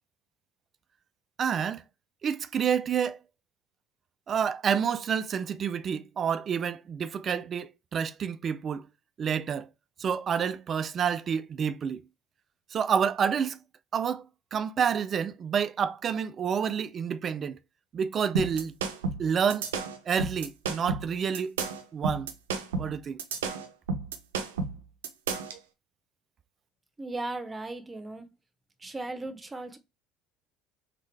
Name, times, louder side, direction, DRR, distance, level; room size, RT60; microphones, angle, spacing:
voice 1, 1.4-1.8 2.2-3.2 4.3-8.9 9.2-9.7 10.0-12.0 12.7-13.6 13.9-14.3 14.5-17.6 17.9-18.8 19.2-19.7 20.1-21.6 21.9-22.3 22.8-23.2, right 7 dB, 45° right, 0.4 m, -28 dB
sound 1, 18.3-25.6, right 4 dB, 85° right, 0.7 m, -32 dB
voice 2, 27.0-28.3 28.8-29.8, right 2 dB, 20° right, 1.1 m, -36 dB
3.7 x 3.7 x 3.3 m
hypercardioid pair, 70°, 0 cm